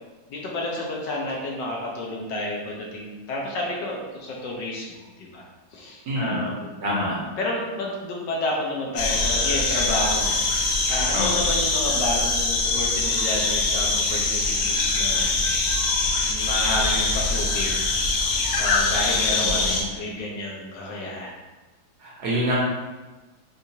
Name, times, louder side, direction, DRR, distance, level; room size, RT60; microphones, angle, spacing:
voice 1, 0.3-5.4 5.7-6.7 7.4-10.4 10.9-15.4 16.3-17.9 18.6-21.3, left 1 dB, 70° left, -2 dB, 1.2 m, -30 dB
voice 2, 6.1-6.5 6.8-7.2 11.1-11.5 19.1-19.8 22.0-22.5, equal, 65° right, -5 dB, 1.1 m, -27 dB
sound 1, 9.0-19.8, left 3 dB, 90° left, 1.5 m, -23 dB
4.5 x 2.4 x 2.7 m, 1.2 s
omnidirectional pair, 2.2 m